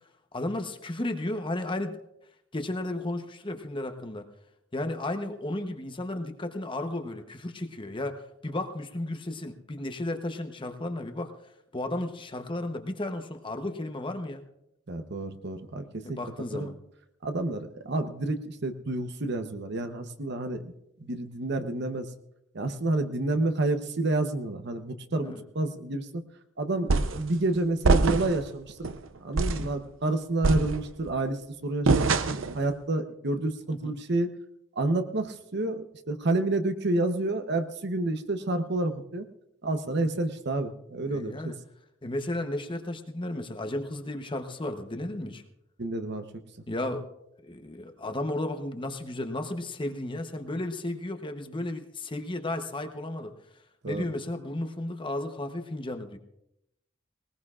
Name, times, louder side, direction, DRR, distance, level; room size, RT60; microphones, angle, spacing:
voice 1, 0.3-2.0 2.5-4.3 4.7-11.3 11.7-14.4 16.0-16.7 25.2-25.4 33.7-34.0 39.9-40.1 41.0-41.6 42.0-45.4 46.7-47.1 47.4-53.3 53.9-56.2, left 1 dB, 25° left, 6 dB, 0.9 m, -34 dB
voice 2, 14.9-16.2 16.5-16.7 17.2-20.7 21.0-22.1 22.5-26.2 26.6-28.9 29.2-34.3 34.8-39.3 39.6-41.5 45.8-46.3 53.8-54.1, right 2 dB, 60° right, 8 dB, 0.9 m, -29 dB
sound 1, 26.9-27.3 27.8-28.4 28.8-29.0 29.4-29.7 30.4-31.1 31.9-32.6, right 3 dB, 90° right, 0.7 m, -24 dB
20.0 x 19.5 x 2.5 m, 0.83 s
head